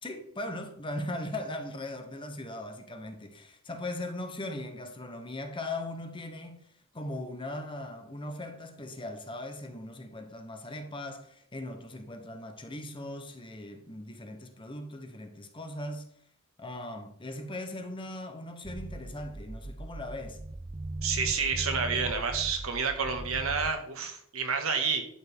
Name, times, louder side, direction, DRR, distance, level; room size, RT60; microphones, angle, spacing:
voice 1, 0.0-6.7 6.9-16.1 16.6-20.4, left 1 dB, 25° left, 1.0 m, -39 dB
sound 1, 18.6-23.7, right 2 dB, 30° right, 0.5 m, -39 dB
voice 2, 21.0-25.0, right 5 dB, 80° right, 1.7 m, -29 dB
11.5 x 7.0 x 3.6 m
head